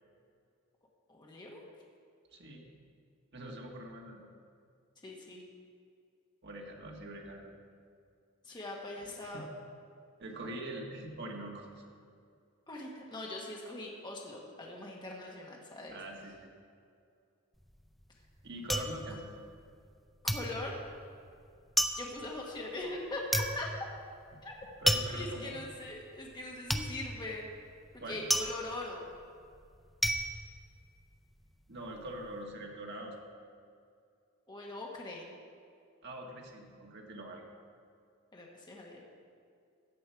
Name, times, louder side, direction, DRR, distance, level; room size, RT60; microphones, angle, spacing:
voice 1, 1.1-1.7 5.0-5.4 8.4-9.5 12.7-16.0 20.2-20.8 22.0-23.9 24.4-24.5 25.1-27.5 27.9-29.1 34.5-35.2 38.3-39.0, left 2 dB, 20° left, -2 dB, 1.3 m, -41 dB
voice 2, 2.3-2.7 3.3-4.2 6.4-7.5 8.5-8.6 9.2-9.4 10.2-11.7 15.9-16.5 18.4-19.3 24.8-25.6 28.0-28.3 31.7-33.2 36.0-37.4, right 1 dB, 55° right, 0 dB, 1.7 m, -43 dB
sound 1, 17.6-20.0 20.3-31.4 31.7-32.3, equal, ahead, 0.5 m, -34 dB
14.5 x 8.5 x 4.6 m, 2.4 s
head